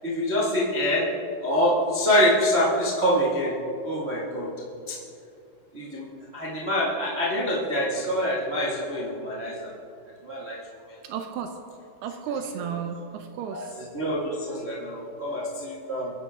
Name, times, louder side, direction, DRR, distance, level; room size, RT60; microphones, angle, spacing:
voice 1, 0.0-1.1 1.4-3.5 3.8-4.5 4.9-5.0 5.7-6.1 6.3-9.7 10.2-10.6 10.9-11.0 13.5-13.6 13.9-16.1, equal, 40° right, -6 dB, 0.8 m, -25 dB
voice 2, 11.0-11.6 12.0-13.8, right 7 dB, 80° right, 6 dB, 2.6 m, -33 dB
24.0 x 11.0 x 3.7 m, 2.6 s
omnidirectional pair, 4.8 m